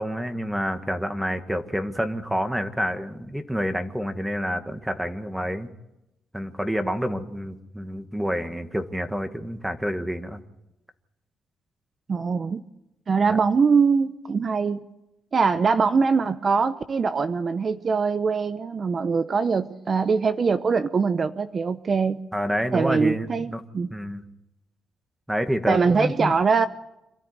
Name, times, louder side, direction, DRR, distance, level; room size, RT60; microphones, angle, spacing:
voice 1, 0.0-5.7 6.3-10.4 22.3-23.6 23.9-24.2 25.3-26.3, equal, 5° right, 8 dB, 1.6 m, -28 dB
voice 2, 12.1-12.6 13.1-14.8 15.3-22.2 22.7-23.9 25.7-26.7, right 5 dB, 40° right, 11 dB, 0.8 m, -22 dB
26.5 x 13.0 x 9.6 m, 0.90 s
cardioid pair, 90°, 0 cm